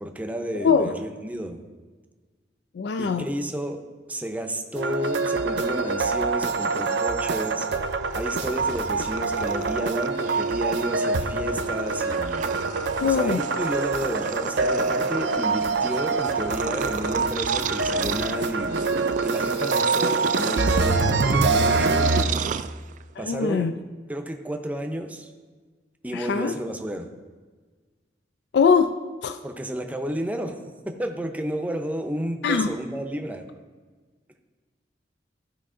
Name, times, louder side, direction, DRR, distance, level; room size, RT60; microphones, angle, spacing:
voice 1, 0.0-1.6 3.0-3.8 4.1-7.7 8.1-12.5 13.0-18.8 19.2-22.4 23.2-23.7 24.1-25.3 26.0-27.1 29.4-30.6 30.9-33.5, equal, 10° right, 5 dB, 0.6 m, -31 dB
voice 2, 0.6-0.9 2.7-3.3 13.0-13.4 23.2-23.7 26.1-26.5 28.5-28.9 29.2-29.4 32.4-32.7, left 5 dB, 70° left, 9 dB, 0.4 m, -22 dB
sound 1, 4.7-22.2, right 3 dB, 75° right, 0.6 m, -25 dB
Purr, 8.0-23.2, right 7 dB, 45° right, 0.3 m, -35 dB
14.0 x 5.2 x 3.7 m, 1.4 s
head